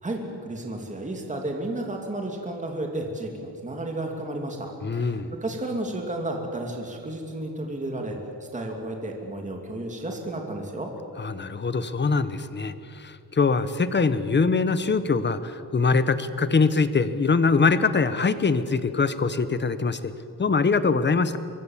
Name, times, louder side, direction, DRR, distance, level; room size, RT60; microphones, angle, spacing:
voice 1, 0.0-8.2 8.5-10.9, right 1 dB, 15° right, 2 dB, 2.7 m, -32 dB
voice 2, 4.8-5.3 11.2-20.1 20.4-21.4, left 4 dB, 25° left, 13 dB, 1.1 m, -23 dB
26.0 x 22.5 x 7.4 m, 2.6 s
wide cardioid pair, 155°, 43 cm